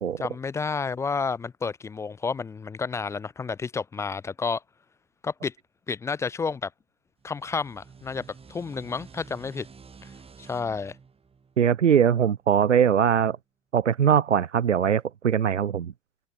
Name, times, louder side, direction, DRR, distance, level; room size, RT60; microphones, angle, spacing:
voice 1, 0.2-4.6 5.2-5.5 5.9-6.7 7.2-9.7 10.0-10.1 10.4-10.9, left 5 dB, 10° left, 0.4 m, -30 dB
sound 1, 7.2-12.5, right 5 dB, 15° right, 3.9 m, -50 dB
voice 2, 11.6-13.4 13.7-15.9, right 8 dB, 90° right, 0.9 m, -21 dB
hypercardioid pair, 95°, 35 cm